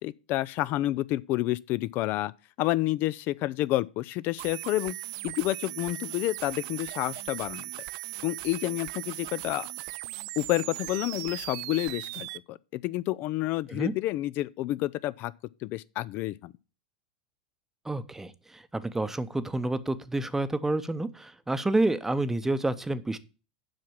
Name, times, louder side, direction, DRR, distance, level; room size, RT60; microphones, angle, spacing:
voice 1, 0.0-2.3 2.6-5.0 5.2-7.7 8.2-9.7 10.4-15.3 15.6-16.5, left 16 dB, 50° left, 0.4 m, -29 dB
sound 1, 4.4-12.4, right 18 dB, 60° right, 0.4 m, -38 dB
voice 2, 17.8-23.2, right 2 dB, 10° right, 0.8 m, -29 dB
7.7 x 5.9 x 7.0 m
hypercardioid pair, 95°, 4 cm